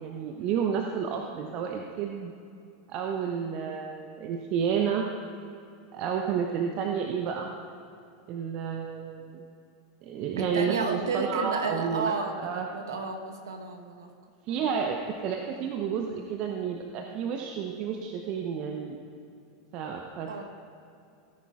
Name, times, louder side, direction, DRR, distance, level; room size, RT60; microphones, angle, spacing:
voice 1, 0.0-2.3 2.9-5.1 5.9-7.5 8.3-9.4 10.0-12.7 14.5-18.9 19.7-20.3, right 7 dB, 45° right, 2 dB, 0.8 m, -31 dB
voice 2, 10.4-14.1 14.5-14.6 20.3-20.4, right 4 dB, 70° right, 4 dB, 1.1 m, -32 dB
17.0 x 9.6 x 2.4 m, 2.5 s
figure-of-eight pair, 85°, 2 cm